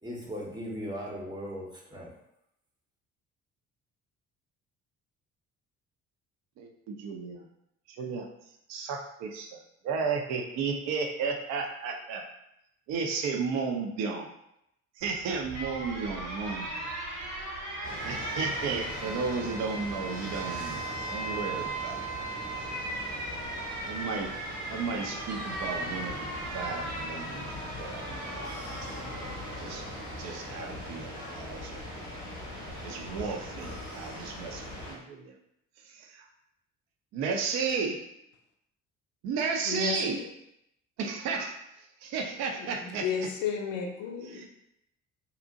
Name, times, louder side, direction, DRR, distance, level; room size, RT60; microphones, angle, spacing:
voice 1, 0.0-2.1, equal, 10° right, -3 dB, 0.7 m, -38 dB
voice 2, 6.6-7.5 7.9-8.3 8.7-9.6 9.8-12.3 12.9-14.3 15.0-16.9 18.0-22.0 22.6-22.7 23.8-24.3 24.6-28.5 28.8-29.3 29.6-29.8 30.2-31.7 32.8-35.4 35.8-36.3 37.1-38.0 39.2-40.2 41.0-43.3 44.2-44.5, right 5 dB, 45° right, 2 dB, 0.5 m, -34 dB
Alarm, 15.0-32.2, right 2 dB, 75° right, 0.8 m, -38 dB
sound 1, 17.8-34.9, left 1 dB, 90° left, 0.9 m, -41 dB
sound 2, 27.4-29.8, left 6 dB, 20° left, 0.3 m, -50 dB
voice 3, 39.6-40.3 42.6-44.5, left 7 dB, 70° left, 2 dB, 0.5 m, -33 dB
2.7 x 2.0 x 2.6 m, 0.79 s
figure-of-eight pair, 45°, 40 cm